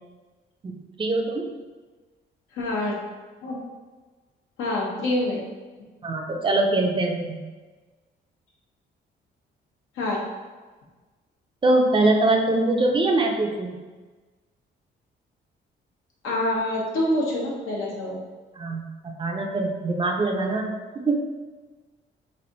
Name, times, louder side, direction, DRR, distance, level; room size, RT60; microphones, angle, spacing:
voice 1, 0.6-1.5 6.0-7.4 11.6-13.7 18.6-21.2, right 2 dB, 25° right, 2 dB, 0.5 m, -23 dB
voice 2, 2.6-2.9 3.4-3.6 4.6-5.4 10.0-10.2 16.2-18.2, left 1 dB, 90° left, -4 dB, 1.1 m, -26 dB
3.2 x 2.5 x 3.9 m, 1.3 s
cardioid pair, 90°, 20 cm